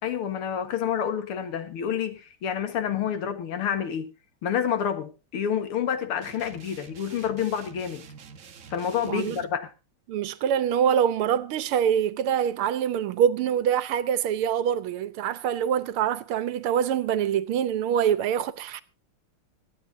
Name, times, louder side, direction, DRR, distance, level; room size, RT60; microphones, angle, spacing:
voice 1, 0.0-4.1 4.4-8.1 8.7-9.7, left 8 dB, 90° left, 2.4 m, -28 dB
sound 1, 6.2-9.5, right 6 dB, 45° right, 1.3 m, -47 dB
voice 2, 9.0-9.4 10.1-18.8, right 9 dB, 85° right, 1.7 m, -25 dB
25.5 x 9.3 x 2.7 m
omnidirectional pair, 2.3 m